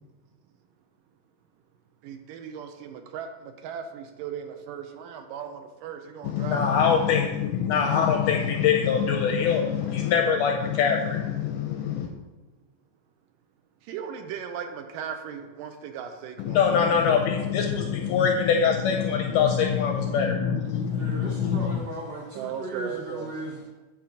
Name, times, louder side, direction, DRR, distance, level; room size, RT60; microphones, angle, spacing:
voice 1, 2.0-6.8 13.9-17.0 22.3-23.3, right 8 dB, 80° right, 6 dB, 2.1 m, -37 dB
voice 2, 6.2-12.1 16.4-21.8, left 7 dB, 80° left, 2 dB, 1.9 m, -24 dB
voice 3, 20.7-23.7, right 2 dB, 65° right, -4 dB, 1.6 m, -36 dB
8.7 x 3.0 x 6.2 m, 1.1 s
omnidirectional pair, 4.0 m